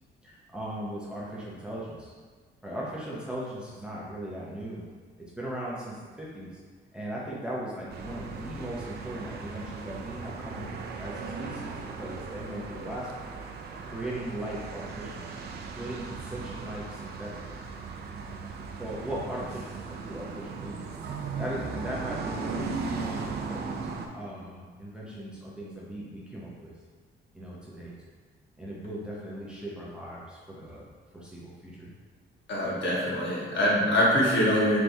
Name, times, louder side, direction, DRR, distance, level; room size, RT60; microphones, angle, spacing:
voice 1, 0.2-2.1 2.6-4.8 5.2-6.5 6.9-13.3 13.8-15.3 15.7-17.6 18.8-20.8 21.4-26.7 27.3-27.9 28.6-30.8 31.1-31.9, right 1 dB, 5° right, -6 dB, 0.5 m, -38 dB
sound 1, 7.9-24.1, right 5 dB, 55° right, 0.4 m, -38 dB
voice 2, 32.5-34.8, equal, 60° left, -6 dB, 1.3 m, -24 dB
4.4 x 3.4 x 2.6 m, 1.5 s
cardioid pair, 160°, 21 cm